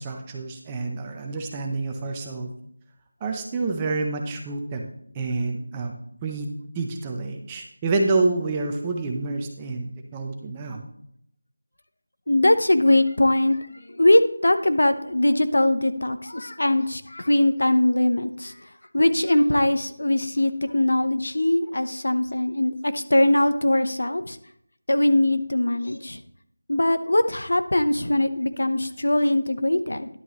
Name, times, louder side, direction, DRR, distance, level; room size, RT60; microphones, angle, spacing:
voice 1, 0.0-2.5 3.2-4.9 5.1-5.9 6.2-10.9, right 3 dB, 10° right, 2 dB, 0.7 m, -28 dB
voice 2, 12.3-13.6 13.9-18.5 18.9-24.4 24.9-26.2 26.7-30.1, left 1 dB, 80° left, 10 dB, 0.9 m, -21 dB
11.0 x 8.7 x 3.1 m, 0.69 s
figure-of-eight pair, 175°, 0 cm